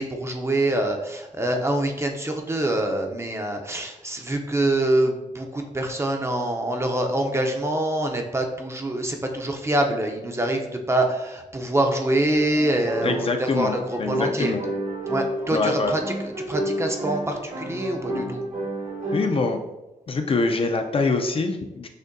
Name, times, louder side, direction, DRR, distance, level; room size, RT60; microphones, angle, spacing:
voice 1, 0.0-13.8 14.1-14.5 15.1-16.0 16.5-18.4, right 1 dB, 20° right, 3 dB, 0.5 m, -25 dB
sound 1, 12.3-19.4, right 1 dB, 75° right, 1.1 m, -31 dB
voice 2, 13.0-14.6 15.5-15.9 19.1-19.6 20.1-21.9, left 3 dB, 40° left, 5 dB, 0.4 m, -24 dB
6.4 x 2.6 x 2.5 m, 0.98 s
wide cardioid pair, 140°, 14 cm